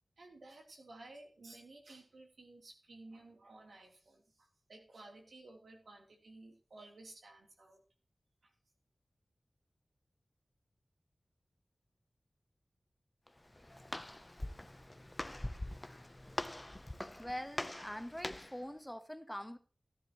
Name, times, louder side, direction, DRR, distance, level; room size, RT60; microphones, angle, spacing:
voice 1, 0.2-7.8, right 2 dB, 85° right, 1 dB, 3.5 m, -55 dB
Walk footsteps, 13.3-18.6, left 1 dB, 25° left, 0.8 m, -43 dB
voice 2, 17.2-19.6, equal, 5° left, 9 dB, 1.3 m, -44 dB
16.5 x 10.0 x 3.1 m, 0.36 s
cardioid pair, 40°, 0 cm